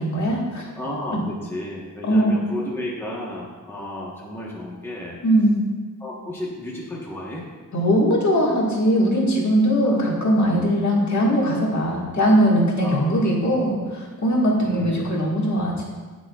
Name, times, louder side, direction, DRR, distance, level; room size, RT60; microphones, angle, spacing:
voice 1, 0.0-0.6 2.0-2.3 5.2-5.6 7.7-15.8, equal, 50° left, -3 dB, 1.8 m, -20 dB
voice 2, 0.8-5.2 6.0-7.4 9.8-10.0 12.8-13.2 14.6-15.0, left 1 dB, 5° left, -4 dB, 1.1 m, -33 dB
17.5 x 6.2 x 2.4 m, 1.4 s
wide cardioid pair, 165°, 36 cm